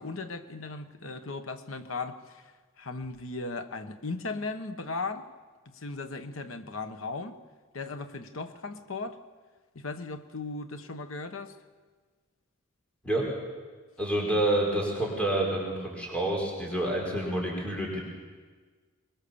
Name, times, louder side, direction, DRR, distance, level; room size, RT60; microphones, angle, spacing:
voice 1, 0.0-5.3 5.7-7.4 7.7-9.2 9.7-11.6, left 3 dB, 75° left, 9 dB, 1.3 m, -37 dB
voice 2, 14.0-18.0, right 1 dB, 5° left, -2 dB, 4.6 m, -28 dB
23.0 x 21.0 x 7.1 m, 1.5 s
head